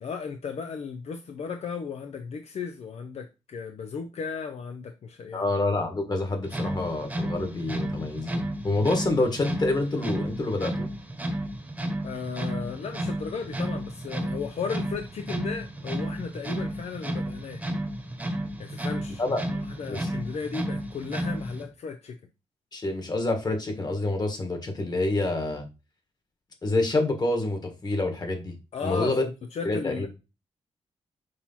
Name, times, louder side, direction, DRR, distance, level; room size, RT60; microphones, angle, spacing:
voice 1, 0.0-5.5 12.0-17.6 18.6-22.2 28.7-30.1, left 5 dB, 70° left, 0.6 m, -35 dB
voice 2, 5.3-10.9 19.2-19.4 19.9-20.1 22.7-25.7 26.6-28.5 28.8-29.3 29.6-30.1, left 2 dB, 35° left, 1.7 m, -27 dB
sound 1, 6.4-21.7, right 1 dB, 15° right, 1.1 m, -32 dB
6.4 x 2.8 x 5.7 m
wide cardioid pair, 145°, 12 cm